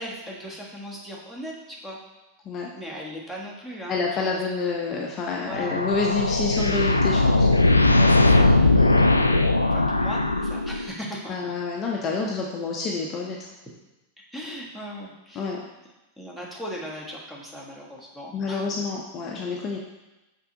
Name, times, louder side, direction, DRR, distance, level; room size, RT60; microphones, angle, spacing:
voice 1, 0.0-2.0 2.7-4.4 5.5-5.7 7.9-8.5 9.0-11.4 14.3-15.6 16.2-18.6, equal, 5° right, -4 dB, 1.5 m, -38 dB
voice 2, 3.9-7.5 8.8-9.0 11.3-13.5 15.4-15.6 18.3-19.8, left 4 dB, 30° left, -1 dB, 0.7 m, -28 dB
sound 1, 5.5-11.0, left 2 dB, 85° left, 0.3 m, -19 dB
5.8 x 4.6 x 3.9 m, 1.0 s
figure-of-eight pair, 90°, 0 cm